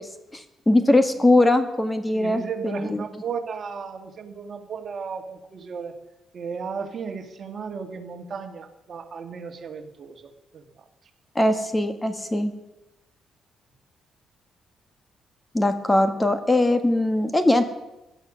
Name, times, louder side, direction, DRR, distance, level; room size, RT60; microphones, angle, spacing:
voice 1, 0.0-3.0 11.3-12.5 15.5-17.7, left 1 dB, 15° left, 8 dB, 1.5 m, -21 dB
voice 2, 2.1-6.0 6.3-10.8, right 6 dB, 50° right, 5 dB, 1.9 m, -35 dB
16.0 x 11.5 x 6.3 m, 0.95 s
cardioid pair, 90°, 0 cm